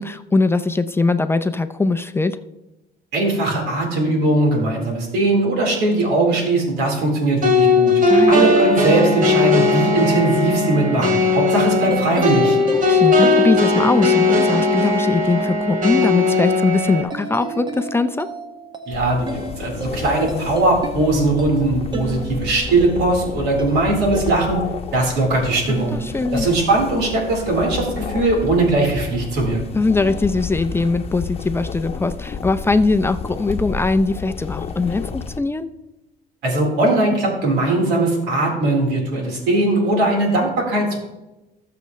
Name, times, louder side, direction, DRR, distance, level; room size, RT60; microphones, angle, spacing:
voice 1, 0.0-2.4 8.1-8.5 12.7-18.3 25.9-26.5 29.7-35.7, left 3 dB, 15° left, 10 dB, 0.5 m, -21 dB
voice 2, 3.1-7.9 8.3-12.6 18.9-24.6 24.9-25.9 26.3-29.6 36.4-41.0, right 2 dB, 85° right, -1 dB, 4.1 m, -19 dB
sound 1, 7.4-17.0, left 3 dB, 50° right, 2.5 m, -17 dB
sound 2, 11.8-25.2 25.7-26.9, right 3 dB, 25° right, 1.3 m, -32 dB
sound 3, 18.9-35.4, left 6 dB, 35° left, 1.0 m, -31 dB
19.5 x 6.8 x 3.2 m, 0.99 s
cardioid pair, 110°, 17 cm